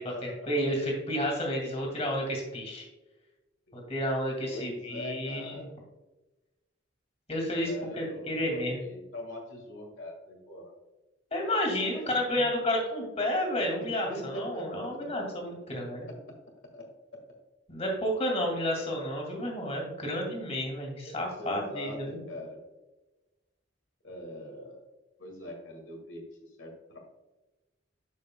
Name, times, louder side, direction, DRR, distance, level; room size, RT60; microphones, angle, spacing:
voice 1, 0.0-2.9 3.7-5.7 7.3-8.8 11.3-16.0 17.7-22.2, left 1 dB, 35° left, 0 dB, 2.2 m, -31 dB
voice 2, 4.5-5.7 7.6-10.7 12.0-12.2 13.8-15.1 16.0-16.1 16.7-16.8 21.1-22.6 24.0-24.8 25.2-26.2 26.6-27.0, equal, 85° left, 1 dB, 1.7 m, -42 dB
12.0 x 5.2 x 2.2 m, 1.1 s
head